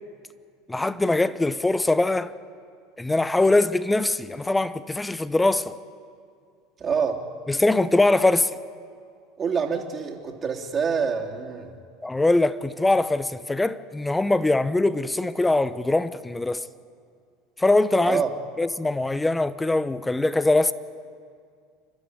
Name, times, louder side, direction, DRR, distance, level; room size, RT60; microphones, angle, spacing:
voice 1, 0.7-2.3 3.0-5.8 7.5-8.6 12.0-16.7 17.6-18.2 18.6-20.7, left 2 dB, 10° left, 0.9 m, -22 dB
voice 2, 6.8-7.2 9.4-11.7 18.0-18.3, right 6 dB, 30° right, 3.1 m, -26 dB
28.5 x 12.5 x 9.6 m
hypercardioid pair, 90°, 0 cm